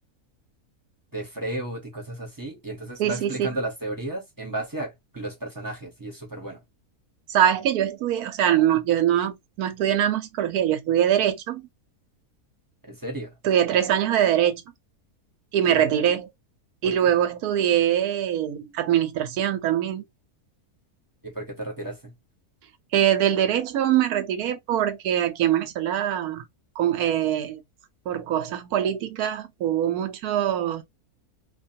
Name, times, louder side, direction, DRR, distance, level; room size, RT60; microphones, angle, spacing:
voice 1, 1.1-6.6 12.9-13.3 15.7-15.8 16.8-17.1 21.2-22.1, right 1 dB, 20° right, 0.7 m, -33 dB
voice 2, 3.0-3.6 7.3-11.7 13.4-14.6 15.5-16.3 16.8-20.0 22.9-26.4 26.8-27.6 28.1-30.8, right 10 dB, 85° right, 1.1 m, -23 dB
2.7 x 2.3 x 2.7 m
omnidirectional pair, 1.6 m